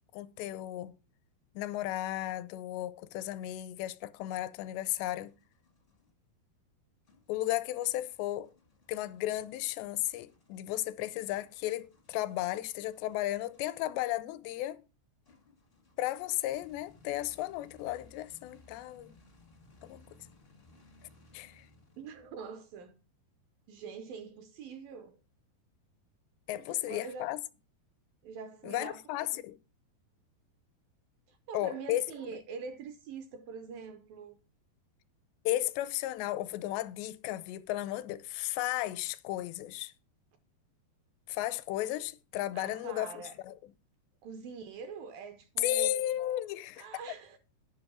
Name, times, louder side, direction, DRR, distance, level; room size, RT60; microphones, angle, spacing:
voice 1, 0.1-1.0 1.6-5.3 7.3-8.5 8.9-14.8 16.0-19.2 19.8-20.0 21.3-21.7 26.5-27.4 28.6-29.6 31.5-32.0 35.5-39.9 41.3-43.5 45.6-46.9, left 14 dB, 90° left, 2.8 m, -34 dB
sound 1, 4.8-6.1 7.0-14.1 15.2-22.5, left 2 dB, 65° left, 0.5 m, -62 dB
voice 2, 22.0-23.0 23.7-25.2 26.5-27.4 28.2-29.0 31.3-34.4 42.6-43.4 44.2-46.1 46.8-47.4, right 5 dB, 75° right, 2.2 m, -44 dB
10.0 x 5.6 x 5.9 m
omnidirectional pair, 4.8 m